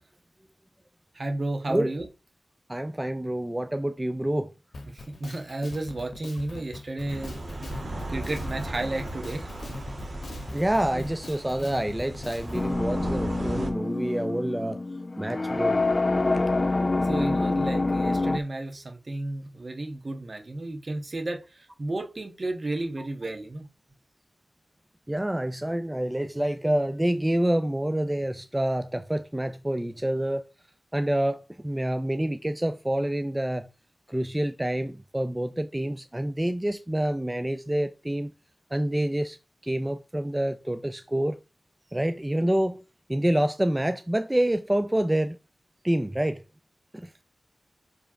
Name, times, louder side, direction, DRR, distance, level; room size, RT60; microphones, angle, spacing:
voice 1, 1.1-2.1 4.8-7.4 7.7-9.5 10.9-11.1 17.0-23.7, right 2 dB, 50° right, 1.4 m, -33 dB
voice 2, 2.7-4.5 10.5-14.8 15.2-15.8 25.1-30.4 30.9-33.7 34.1-38.3 38.7-39.4 39.6-41.4 41.9-42.8 43.1-45.4 45.8-46.4 47.0-47.1, right 1 dB, 15° right, 0.5 m, -27 dB
Drum kit, 4.7-12.7, left 2 dB, 75° left, 1.2 m, -42 dB
sound 1, 7.1-13.7, right 1 dB, 65° right, 1.7 m, -36 dB
sound 2, 12.5-18.4, left 2 dB, 40° left, 0.4 m, -26 dB
5.1 x 3.4 x 5.6 m
cardioid pair, 45°, 0 cm